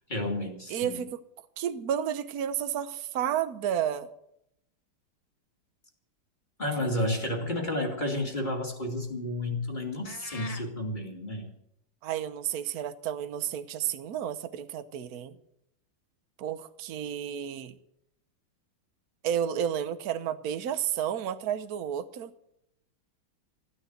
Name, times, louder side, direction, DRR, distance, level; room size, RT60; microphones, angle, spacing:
voice 1, 0.1-1.0 6.6-11.5, left 1 dB, 20° left, 2 dB, 2.5 m, -31 dB
voice 2, 0.7-1.2 1.6-4.1 12.0-15.4 16.4-17.8 19.2-22.3, right 9 dB, 55° right, 11 dB, 1.2 m, -31 dB
sound 1, 10.0-10.7, left 3 dB, 50° left, 0.4 m, -42 dB
15.0 x 10.0 x 7.9 m, 0.77 s
omnidirectional pair, 2.4 m